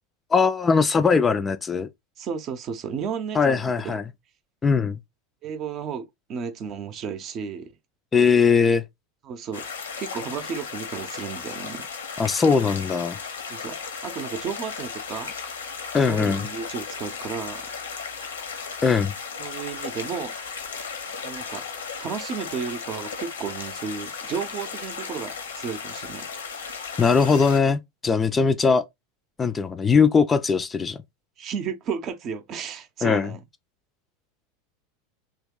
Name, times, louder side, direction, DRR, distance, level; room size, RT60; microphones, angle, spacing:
voice 1, 0.3-1.9 3.4-4.0 4.6-5.0 8.1-8.8 12.2-13.2 15.9-16.4 18.8-19.1 27.0-28.8 29.4-31.0 33.0-33.3, left 5 dB, 20° left, 0.4 m, -20 dB
voice 2, 2.2-3.9 5.4-7.7 9.2-9.7 10.0-11.9 13.5-13.8 14.0-15.3 16.1-17.7 19.4-20.3 21.2-26.3 28.3-28.5 31.4-33.4, right 6 dB, 40° right, 0.6 m, -33 dB
River very close prespective, 9.5-27.6, left 5 dB, 75° left, 0.8 m, -35 dB
3.0 x 2.9 x 3.6 m
figure-of-eight pair, 80°, 0 cm